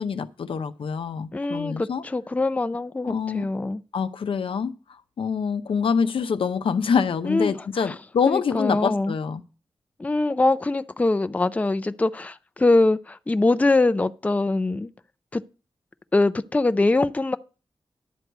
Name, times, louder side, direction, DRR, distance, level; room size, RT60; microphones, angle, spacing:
voice 1, 0.0-2.0 3.0-3.5 3.9-9.4, left 6 dB, 80° left, 0.7 m, -26 dB
voice 2, 1.3-3.8 7.2-7.9 8.3-9.2 10.0-14.9 15.3-15.4 16.1-17.4, left 2 dB, 15° left, 0.4 m, -23 dB
11.0 x 4.7 x 8.0 m
wide cardioid pair, 130°, 9 cm